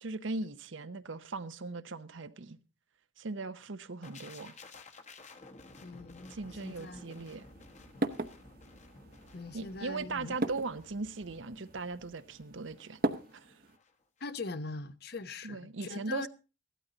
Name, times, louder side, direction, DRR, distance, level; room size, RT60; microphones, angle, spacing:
voice 1, 0.0-2.6 3.2-4.6 6.3-7.4 9.5-13.0 13.3-13.6 15.4-16.3, right 3 dB, 80° right, 0.8 m, -39 dB
sound 1, 4.0-13.9 14.2-14.4, left 2 dB, 40° left, 1.2 m, -54 dB
voice 2, 5.8-6.3 6.6-7.1 9.3-10.4 14.2-16.3, left 3 dB, 55° left, 0.8 m, -41 dB
sound 2, 6.4-13.8, right 1 dB, 50° right, 0.8 m, -40 dB
15.5 x 12.5 x 3.9 m
head